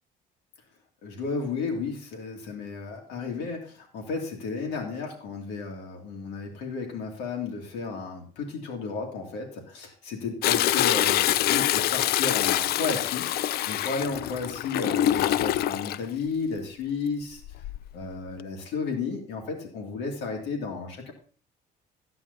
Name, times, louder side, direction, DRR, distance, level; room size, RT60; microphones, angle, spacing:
voice 1, 1.0-17.4 17.9-21.1, left 4 dB, 85° left, 1 dB, 2.6 m, -33 dB
Toilet flush, 10.4-16.0 17.4-17.9 18.4-18.5, left 13 dB, 65° left, 0.4 m, -25 dB
13.0 x 9.7 x 4.1 m, 0.43 s
cardioid pair, 110°, 17 cm